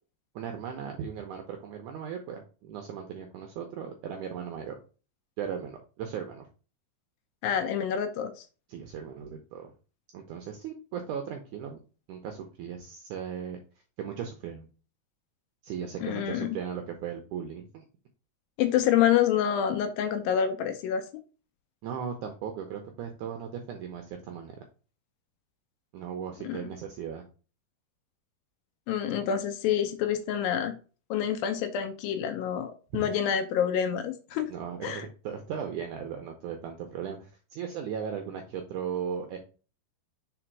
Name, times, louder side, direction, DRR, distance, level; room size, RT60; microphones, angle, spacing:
voice 1, 0.4-4.8 5.4-6.5 8.7-9.7 10.1-11.8 12.1-13.6 14.0-14.7 15.6-17.8 21.8-24.6 25.9-27.2 34.5-39.4, right 7 dB, 80° right, 4 dB, 1.8 m, -37 dB
voice 2, 7.4-8.5 16.0-16.6 18.6-21.1 26.4-26.6 28.9-30.8 31.1-34.5 34.8-35.1, left 9 dB, 80° left, 8 dB, 2.2 m, -27 dB
5.0 x 4.3 x 4.6 m, 0.35 s
omnidirectional pair, 4.4 m